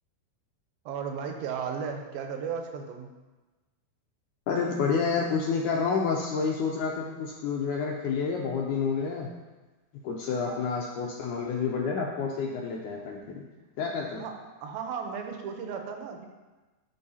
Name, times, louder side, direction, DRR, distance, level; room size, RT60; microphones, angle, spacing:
voice 1, 0.9-3.1 10.3-10.6 14.2-16.3, right 6 dB, 85° right, 4 dB, 2.6 m, -35 dB
voice 2, 4.5-9.3 10.0-13.4 13.8-14.2, left 5 dB, 85° left, 0 dB, 1.8 m, -29 dB
12.5 x 5.5 x 2.8 m, 1.2 s
omnidirectional pair, 4.2 m